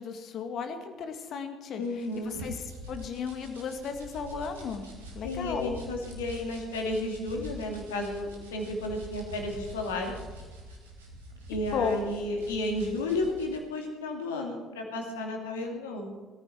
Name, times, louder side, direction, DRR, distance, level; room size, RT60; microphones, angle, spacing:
voice 1, 0.0-1.8 2.3-2.5 2.9-4.8 5.1-5.8 11.7-12.0, left 6 dB, 50° left, 7 dB, 1.9 m, -34 dB
voice 2, 1.8-2.3 5.2-10.1 11.5-16.3, left 2 dB, 75° left, 2 dB, 2.6 m, -33 dB
sound 1, 1.8-13.6, right 1 dB, 80° right, 3.3 m, -45 dB
20.5 x 14.0 x 4.5 m, 1.4 s
figure-of-eight pair, 50°, 0 cm